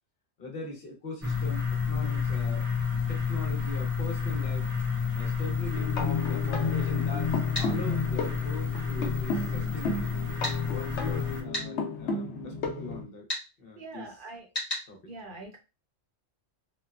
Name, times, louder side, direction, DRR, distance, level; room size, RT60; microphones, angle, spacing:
voice 1, 0.4-2.6 3.1-4.7 5.2-10.3 10.7-13.3 13.6-14.2 14.9-15.1, left 2 dB, 60° left, 1 dB, 1.0 m, -41 dB
sound 1, 1.2-11.4, left 6 dB, 90° right, 1.3 m, -30 dB
sound 2, 5.7-13.0, left 4 dB, 85° left, 1.0 m, -32 dB
sound 3, 7.5-7.7 10.4-10.6 11.5-11.7 13.3-13.4 14.5-14.9, left 1 dB, 30° left, 1.3 m, -32 dB
voice 2, 13.8-14.4 15.1-15.6, right 3 dB, 55° right, 1 dB, 0.9 m, -43 dB
3.0 x 2.1 x 2.3 m, 0.28 s
omnidirectional pair, 1.1 m